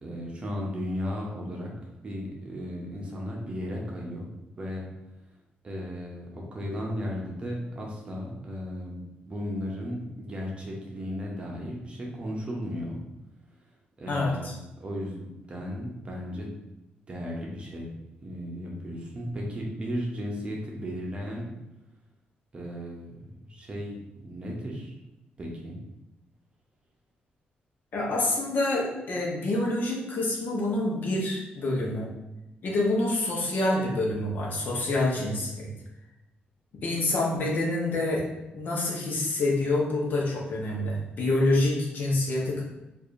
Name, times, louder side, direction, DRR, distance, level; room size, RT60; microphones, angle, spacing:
voice 1, 0.0-1.7 2.0-4.3 4.6-4.9 5.6-13.0 14.0-14.5 14.8-16.6 17.1-17.9 18.2-21.5 22.5-23.2 23.5-24.9 25.4-25.8, equal, 30° right, -2 dB, 0.8 m, -35 dB
voice 2, 14.1-14.5 27.9-32.1 32.6-35.7 36.7-38.2 38.5-42.6, left 2 dB, 55° left, -2 dB, 0.9 m, -27 dB
4.7 x 2.6 x 2.5 m, 0.94 s
cardioid pair, 125°, 4 cm